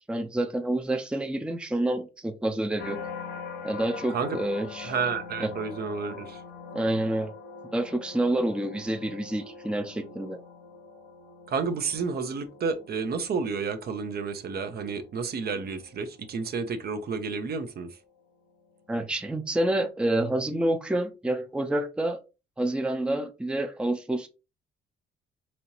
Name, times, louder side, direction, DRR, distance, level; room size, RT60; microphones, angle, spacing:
voice 1, 0.1-3.0 3.6-4.9 5.4-5.5 6.7-7.3 7.7-10.4 18.9-22.2 22.6-24.3, right 1 dB, 5° right, 0.5 m, -28 dB
sound 1, 2.8-18.0 18.5-18.9, left 5 dB, 85° left, 0.9 m, -44 dB
voice 2, 4.8-6.4 11.5-18.0, right 5 dB, 50° right, 0.7 m, -31 dB
4.2 x 2.8 x 2.9 m
cardioid pair, 90°, 20 cm